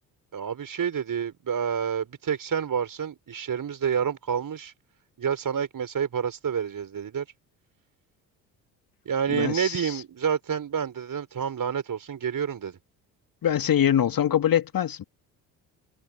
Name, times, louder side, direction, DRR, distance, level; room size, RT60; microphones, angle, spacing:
voice 1, 0.3-4.7 5.2-7.3 9.0-12.8, right 7 dB, 40° right, 6.3 m, -28 dB
voice 2, 9.3-9.9 13.4-15.0, left 10 dB, 45° left, 2.7 m, -23 dB
figure-of-eight pair, 50°, 48 cm